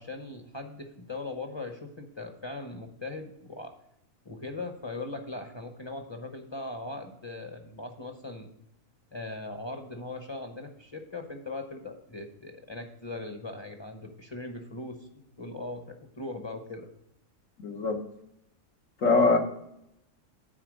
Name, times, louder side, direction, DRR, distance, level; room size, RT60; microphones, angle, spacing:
voice 1, 0.0-3.7 4.2-8.5 9.1-16.9, left 2 dB, 25° left, 4 dB, 0.7 m, -39 dB
voice 2, 17.6-18.0 19.0-19.4, left 3 dB, 75° left, 3 dB, 1.5 m, -22 dB
9.9 x 4.3 x 6.3 m, 0.80 s
omnidirectional pair, 1.4 m